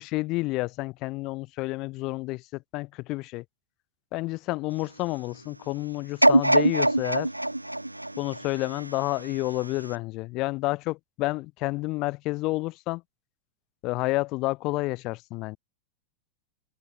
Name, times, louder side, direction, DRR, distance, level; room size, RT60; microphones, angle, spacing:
voice 1, 0.0-3.4 4.1-7.3 8.2-13.0 13.8-15.6, left 21 dB, 40° left, 4.7 m, -30 dB
sound 1, 6.2-9.3 9.8-9.9, right 1 dB, 85° right, 0.4 m, -23 dB
figure-of-eight pair, 90°, 0 cm